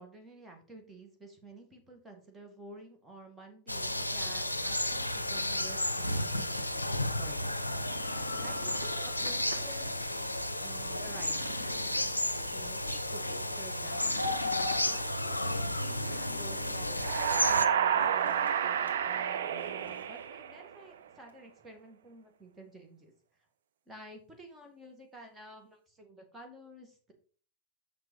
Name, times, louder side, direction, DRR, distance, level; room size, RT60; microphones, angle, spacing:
voice 1, 0.0-7.6 8.1-10.0 10.6-11.6 12.5-23.1 23.9-27.1, right 2 dB, 10° right, 3 dB, 2.3 m, -51 dB
sound 1, 3.7-17.7, left 1 dB, 85° left, 0.5 m, -33 dB
sound 2, 7.7-9.8 10.2-10.3 10.8-12.7 13.9-15.0 15.9-16.8 17.9-18.6 18.9-19.0 19.6-20.2 21.3-21.4, equal, 90° right, 1.3 m, -46 dB
sound 3, 16.9-20.8, right 8 dB, 60° right, 0.6 m, -30 dB
6.8 x 6.0 x 4.8 m, 0.42 s
figure-of-eight pair, 90°, 0 cm